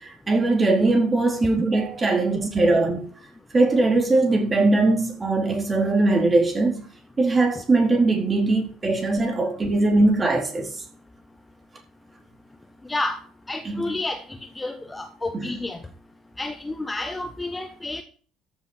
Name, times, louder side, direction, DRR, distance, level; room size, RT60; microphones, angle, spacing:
voice 1, 0.0-3.0 3.5-6.8 7.2-10.7 13.6-14.0 15.3-15.6, right 2 dB, 25° right, 4.2 m, -21 dB
voice 2, 13.5-14.2 14.6-15.8 16.4-18.0, left 2 dB, 15° left, 1.3 m, -30 dB
14.0 x 7.9 x 4.7 m
figure-of-eight pair, 55°, 0 cm